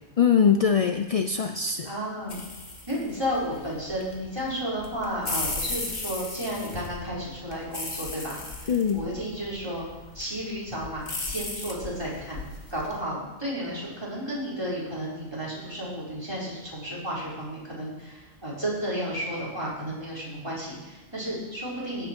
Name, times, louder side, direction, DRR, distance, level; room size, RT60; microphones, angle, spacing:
voice 1, 0.2-1.9 8.7-9.0, left 7 dB, 55° left, 7 dB, 0.4 m, -22 dB
voice 2, 1.8-2.4 2.9-9.8 10.1-12.4 12.7-22.1, equal, 20° right, -7 dB, 4.2 m, -33 dB
sound 1, 2.3-13.0, left 2 dB, 35° left, 1.6 m, -37 dB
16.0 x 9.1 x 4.5 m, 1.1 s
omnidirectional pair, 1.3 m